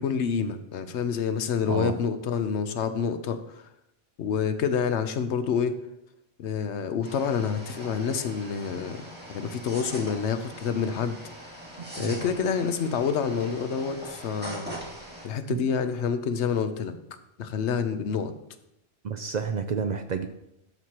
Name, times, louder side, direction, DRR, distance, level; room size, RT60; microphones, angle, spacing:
voice 1, 0.0-3.6 4.2-5.8 6.4-9.0 9.3-11.2 12.0-14.8 15.2-17.0 17.4-18.3, left 6 dB, 85° left, 10 dB, 1.0 m, -28 dB
sound 1, 7.0-15.3, right 1 dB, 10° right, 2.1 m, -42 dB
voice 2, 11.8-12.2 15.5-15.6 19.0-20.3, right 6 dB, 55° right, 8 dB, 0.5 m, -30 dB
12.5 x 6.1 x 2.9 m, 0.82 s
omnidirectional pair, 1.1 m